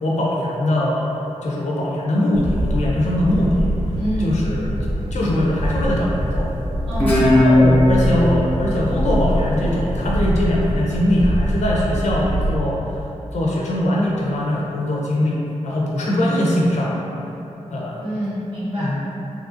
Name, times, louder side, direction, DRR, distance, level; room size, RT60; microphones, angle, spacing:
voice 1, 0.0-1.1 1.4-3.7 4.2-4.7 5.1-6.5 7.2-12.8 13.3-17.0 17.7-18.0 18.8-19.0, left 1 dB, 70° left, -4 dB, 0.4 m, -21 dB
sound 1, 2.3-12.6, equal, 85° right, 0.5 m, -24 dB
voice 2, 4.0-4.4 6.9-7.5 18.0-19.0, equal, 45° right, -12 dB, 0.7 m, -26 dB
Guitar, 7.0-10.2, left 1 dB, 15° left, 0.7 m, -18 dB
2.7 x 2.4 x 2.5 m, 2.9 s
wide cardioid pair, 85°, 12 cm